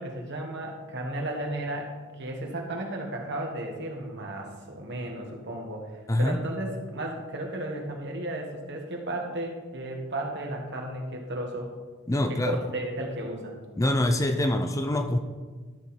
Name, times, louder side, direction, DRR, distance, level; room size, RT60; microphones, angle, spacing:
voice 1, 0.0-1.9 2.2-11.7 12.3-13.6, right 1 dB, 60° right, 1 dB, 1.7 m, -34 dB
voice 2, 12.1-12.6 13.8-15.2, left 1 dB, 15° left, 7 dB, 0.4 m, -24 dB
12.0 x 6.3 x 4.3 m, 1.4 s
head